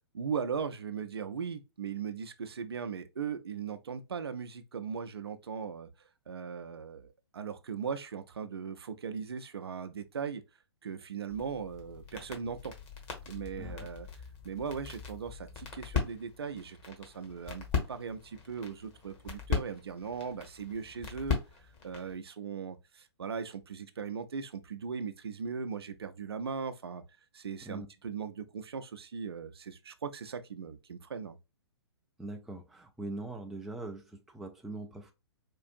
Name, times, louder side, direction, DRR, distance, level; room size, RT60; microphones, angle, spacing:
voice 1, 0.1-10.4 10.8-12.7 13.3-14.1 14.4-21.4 21.8-27.0 27.3-31.4, right 6 dB, 65° right, 0.6 m, -38 dB
sound 1, 11.3-22.2, left 6 dB, 30° left, 1.1 m, -39 dB
voice 2, 13.6-13.9 27.6-27.9 32.2-35.1, right 2 dB, ahead, 0.3 m, -42 dB
4.5 x 2.4 x 2.4 m
figure-of-eight pair, 120°, 14 cm